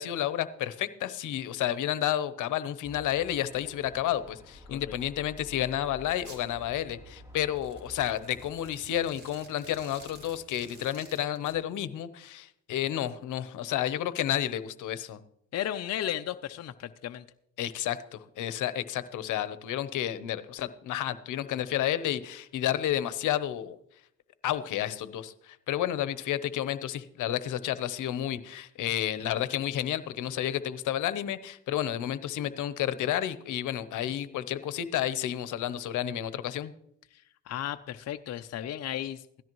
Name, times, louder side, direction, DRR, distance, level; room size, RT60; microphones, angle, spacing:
voice 1, 0.0-15.2 17.6-23.8 24.4-36.7, left 11 dB, 80° left, 13 dB, 0.9 m, -31 dB
sound 1, 2.8-8.5, left 1 dB, 10° right, 3.3 m, -50 dB
Domestic sounds home sounds, 6.2-6.4 7.5-11.6, right 2 dB, 35° right, 3.7 m, -51 dB
voice 2, 15.5-17.2 37.5-39.4, left 11 dB, 55° left, 8 dB, 0.6 m, -34 dB
17.0 x 13.5 x 3.1 m, 0.74 s
cardioid pair, 90°, 30 cm